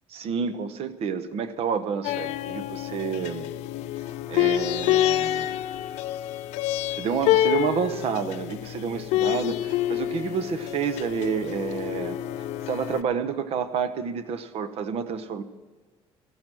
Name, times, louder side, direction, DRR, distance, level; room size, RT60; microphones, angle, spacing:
voice 1, 0.1-3.5 4.3-5.6 6.9-15.4, right 6 dB, 60° right, 11 dB, 0.9 m, -29 dB
sound 1, 2.0-13.0, left 13 dB, 85° left, 0.5 m, -27 dB
15.0 x 6.2 x 9.0 m, 1.4 s
cardioid pair, 110°, 11 cm